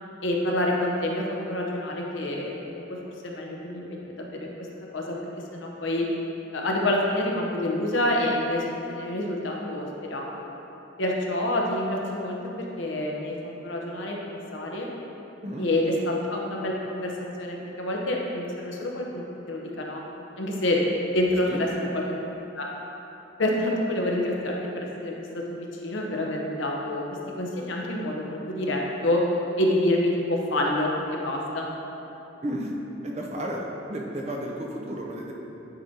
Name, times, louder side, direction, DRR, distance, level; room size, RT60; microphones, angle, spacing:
voice 1, 0.2-3.0 3.2-4.7 4.9-5.2 5.5-6.1 6.5-10.3 11.0-13.4 13.6-14.9 15.6-17.1 17.4-20.0 20.4-22.0 22.5-22.7 23.4-27.0 27.4-29.2 29.6-31.7, left 1 dB, 75° left, -1 dB, 0.9 m, -27 dB
voice 2, 32.4-32.7 33.0-35.3, right 1 dB, 35° right, 0 dB, 0.6 m, -32 dB
9.1 x 4.9 x 2.8 m, 3.0 s
head